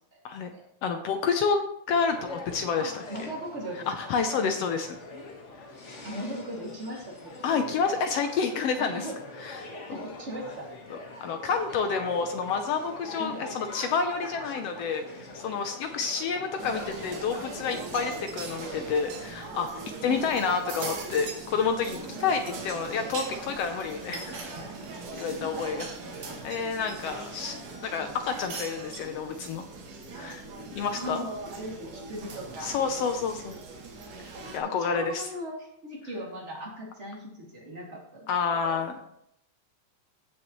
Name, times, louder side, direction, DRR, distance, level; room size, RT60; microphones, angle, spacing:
voice 1, 0.8-3.3 3.9-5.0 7.4-9.1 9.4-10.0 10.9-19.7 20.0-24.4 25.2-25.9 26.4-27.5 27.8-29.7 30.2-30.4 30.7-31.3 32.6-33.6 34.5-35.3 38.3-39.0, left 5 dB, 75° left, 6 dB, 1.4 m, -29 dB
sound 1, 1.9-19.0, left 2 dB, 45° left, 1.0 m, -43 dB
voice 2, 2.8-4.1 6.0-7.5 8.8-9.1 9.7-10.7 11.7-11.8 13.2-13.4 20.1-20.2 25.1-25.5 31.0-32.7 34.6-38.3 38.6-38.8, equal, 25° right, -3 dB, 2.4 m, -38 dB
sound 2, 16.6-34.6, right 3 dB, 90° right, 3.2 m, -40 dB
16.0 x 6.3 x 3.1 m, 0.75 s
omnidirectional pair, 3.5 m